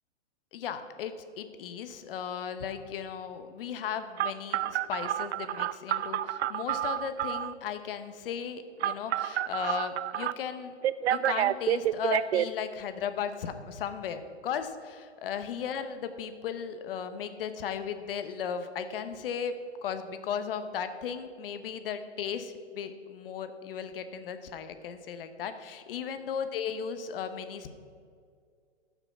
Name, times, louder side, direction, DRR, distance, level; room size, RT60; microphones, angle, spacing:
voice 1, 0.5-10.7 11.1-19.5 19.8-27.7, left 7 dB, 55° left, 9 dB, 1.0 m, -36 dB
Telephone, 4.2-7.5 8.8-10.3 10.8-12.5, right 12 dB, 70° right, 0.5 m, -29 dB
14.0 x 5.9 x 5.9 m, 2.1 s
hypercardioid pair, 145°, 34 cm